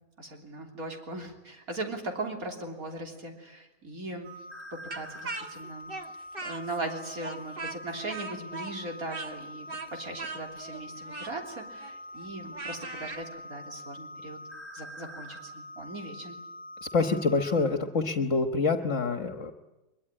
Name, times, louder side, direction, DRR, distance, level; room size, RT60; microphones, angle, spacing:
voice 1, 0.2-4.3 4.7-5.9 6.4-14.4 14.7-16.4, right 2 dB, 80° right, 2 dB, 3.7 m, -39 dB
sound 1, 4.2-17.6, left 1 dB, 10° right, 5.2 m, -44 dB
Speech, 4.9-6.9 7.2-13.2, right 3 dB, 40° right, 1.9 m, -40 dB
voice 2, 16.9-19.5, left 4 dB, 60° left, 6 dB, 1.7 m, -26 dB
23.0 x 23.0 x 10.0 m, 1.0 s
omnidirectional pair, 1.5 m